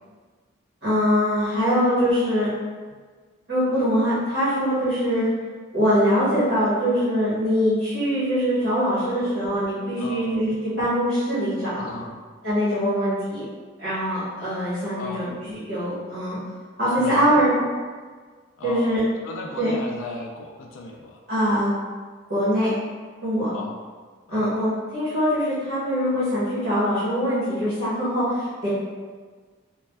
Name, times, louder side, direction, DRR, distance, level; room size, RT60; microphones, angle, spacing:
voice 1, 0.8-2.5 3.5-5.2 5.7-11.9 12.4-13.4 13.8-16.4 16.8-17.6 18.6-19.0 19.6-19.7 21.3-21.7 22.3-22.7 23.2-23.5 24.3-28.7, equal, 55° right, -14 dB, 1.1 m, -23 dB
voice 2, 10.0-10.3 11.8-12.2 15.0-15.3 17.0-17.4 18.6-18.8 19.2-21.2 23.5-23.8 24.3-24.5, left 2 dB, 80° left, 0 dB, 0.3 m, -36 dB
3.2 x 2.1 x 2.2 m, 1.5 s
head